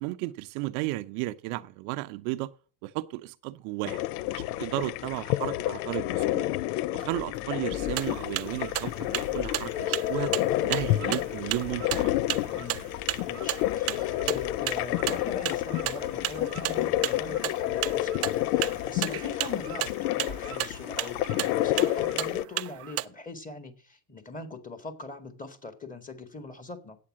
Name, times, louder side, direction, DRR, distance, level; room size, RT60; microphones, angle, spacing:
voice 1, 0.0-2.5 2.8-4.0 4.3-6.5 6.9-10.3 10.6-12.1, right 18 dB, 65° right, 0.7 m, -34 dB
sound 1, 3.8-22.4, left 15 dB, 75° left, 0.6 m, -30 dB
sound 2, 7.1-20.4, left 4 dB, 50° left, 3.6 m, -48 dB
sound 3, 7.8-23.0, right 16 dB, 35° right, 0.4 m, -33 dB
voice 2, 12.5-12.9 13.2-27.0, left 3 dB, 15° left, 1.9 m, -42 dB
8.6 x 8.4 x 7.4 m
supercardioid pair, 105°, 47 cm